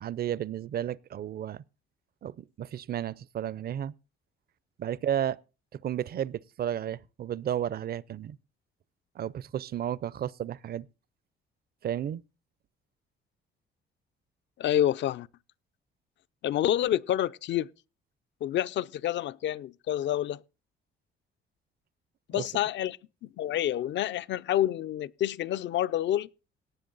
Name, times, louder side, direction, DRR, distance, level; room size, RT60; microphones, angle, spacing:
voice 1, 0.0-1.6 2.2-3.9 4.8-5.4 5.7-8.4 9.2-10.9 11.8-12.2 22.3-22.5, right 10 dB, 50° right, 0.5 m, -33 dB
voice 2, 14.6-15.3 16.4-17.7 18.4-20.4 22.3-23.0 23.2-26.3, left 12 dB, 65° left, 0.5 m, -28 dB
18.0 x 7.0 x 3.9 m
cardioid pair, 90°, 20 cm